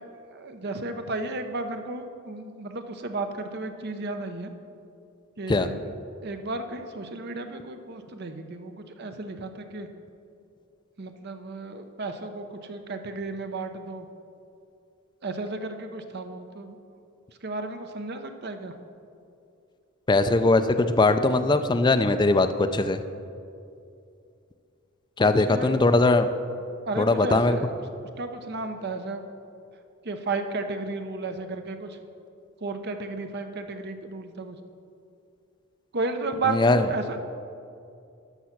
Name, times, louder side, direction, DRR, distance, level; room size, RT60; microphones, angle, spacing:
voice 1, 0.0-4.5 5.4-5.8 6.2-9.9 11.0-14.1 15.2-16.8 17.4-18.7 25.2-25.8 26.9-27.7 28.2-29.2 30.0-32.0 32.6-34.6 35.9-37.2, right 3 dB, 50° right, 7 dB, 0.7 m, -33 dB
voice 2, 20.1-23.0 25.2-26.3 27.0-27.6 36.5-36.8, left 2 dB, 20° left, 8 dB, 0.4 m, -20 dB
12.5 x 5.9 x 5.8 m, 2.5 s
head